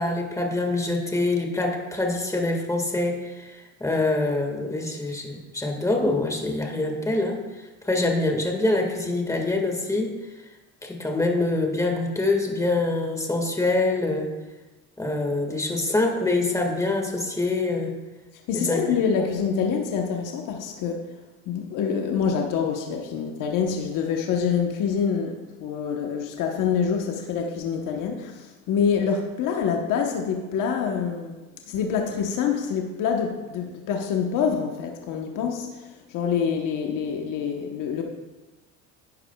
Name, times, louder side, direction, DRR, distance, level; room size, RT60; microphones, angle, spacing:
voice 1, 0.0-7.4 7.8-10.2 10.8-14.3 15.0-17.9 18.5-18.8 19.2-19.3, left 2 dB, 10° left, 2 dB, 1.8 m, -25 dB
voice 2, 18.5-21.0 21.5-31.4 31.7-38.0, left 6 dB, 65° left, 2 dB, 1.1 m, -26 dB
11.0 x 9.7 x 2.3 m, 1.2 s
supercardioid pair, 90°, 34 cm